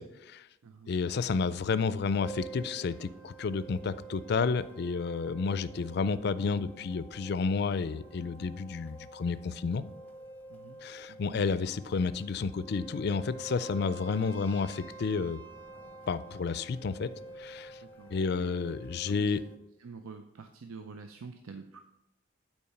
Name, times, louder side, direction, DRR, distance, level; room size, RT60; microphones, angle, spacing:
voice 1, 0.0-0.5 0.9-9.8 10.8-15.4 16.1-17.1 17.4-17.8 18.1-19.4, left 5 dB, 50° left, 15 dB, 0.3 m, -31 dB
sound 1, 2.2-19.6, right 3 dB, 5° left, 0.6 m, -48 dB
voice 2, 11.1-11.4 17.8-18.5 19.1-19.3 19.8-21.8, right 4 dB, 90° right, 6 dB, 0.5 m, -47 dB
8.5 x 4.5 x 5.8 m, 0.91 s
head